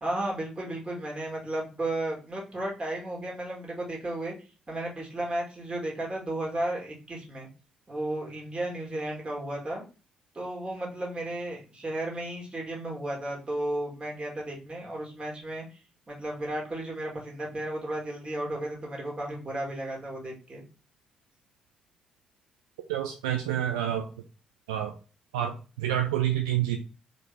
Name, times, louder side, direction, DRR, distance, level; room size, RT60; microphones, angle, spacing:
voice 1, 0.0-4.3 4.7-7.5 7.9-9.8 10.3-15.8 16.1-20.6, right 1 dB, 30° right, -2 dB, 2.2 m, -34 dB
voice 2, 22.9-24.1 24.7-24.9 25.3-26.8, right 11 dB, 75° right, 4 dB, 0.4 m, -28 dB
4.5 x 3.2 x 3.3 m, 0.34 s
figure-of-eight pair, 40°, 3 cm